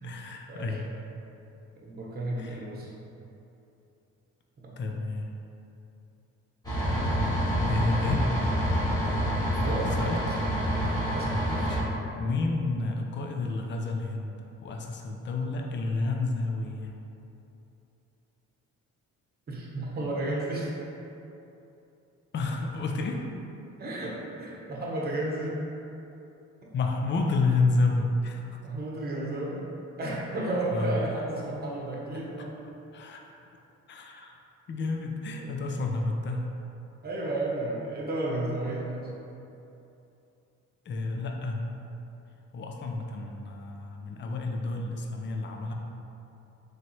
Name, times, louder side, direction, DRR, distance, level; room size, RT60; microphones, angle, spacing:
voice 1, 0.0-1.0 2.4-2.6 4.8-5.3 7.7-8.3 10.0-10.2 11.5-17.0 22.3-23.2 26.7-28.6 30.7-31.0 32.4-32.5 32.9-33.3 33.9-34.3 34.7-36.5 40.9-41.7 42.5-45.7, left 3 dB, 40° left, 2 dB, 0.5 m, -30 dB
voice 2, 1.8-2.9 4.6-4.8 9.6-10.3 11.1-11.4 19.5-20.7 23.8-25.6 28.6-29.6 30.0-32.6 35.4-35.5 37.0-39.1, right 2 dB, 30° right, -4 dB, 0.9 m, -32 dB
sound 1, 6.6-11.8, equal, 10° left, 1.5 m, -27 dB
4.1 x 3.2 x 3.0 m, 2.8 s
cardioid pair, 90°, 30 cm